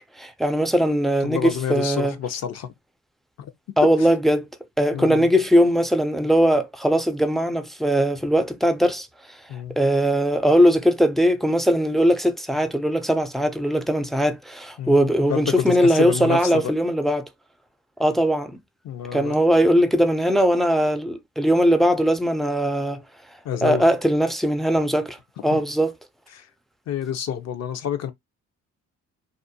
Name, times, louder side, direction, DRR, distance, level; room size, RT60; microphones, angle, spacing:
voice 1, 0.2-2.1 3.8-4.5 4.8-9.1 9.8-17.3 18.0-18.6 19.1-23.0 23.6-25.2 25.4-25.9, equal, ahead, 0.3 m, -20 dB
voice 2, 1.2-2.7 3.4-3.5 4.0-4.1 4.9-5.3 9.5-9.8 14.8-16.7 18.8-19.4 23.4-23.9 25.5-25.6 26.3-26.5 26.9-28.1, left 8 dB, 60° left, 0.6 m, -28 dB
2.5 x 2.1 x 2.6 m
cardioid pair, 90°, 30 cm